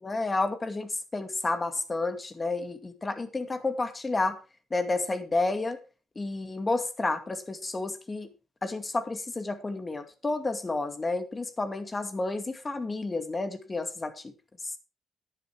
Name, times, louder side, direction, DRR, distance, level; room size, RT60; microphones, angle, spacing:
voice 1, 0.0-4.4 4.7-5.8 6.2-8.3 8.6-14.1, left 3 dB, 25° left, 2.3 m, -30 dB
10.5 x 10.5 x 4.6 m
cardioid pair, 90°, 0 cm